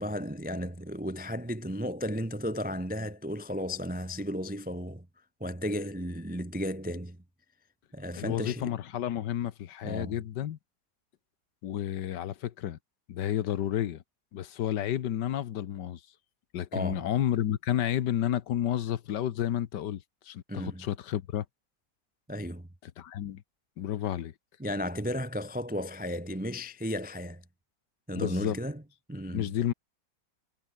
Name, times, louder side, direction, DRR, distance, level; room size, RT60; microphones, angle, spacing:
voice 1, 0.0-5.1 5.4-7.2 7.9-8.8 9.8-10.1 16.7-17.1 20.5-20.9 22.3-22.7 24.6-27.4 28.1-28.8 29.1-29.5, equal, 10° right, 0.4 m, -34 dB
voice 2, 8.2-10.6 11.6-12.8 13.1-14.0 14.3-16.0 16.5-21.4 22.8-23.4 23.8-24.3 28.2-28.6 29.3-29.7, left 11 dB, 70° left, 1.5 m, -31 dB
omnidirectional pair, 2.0 m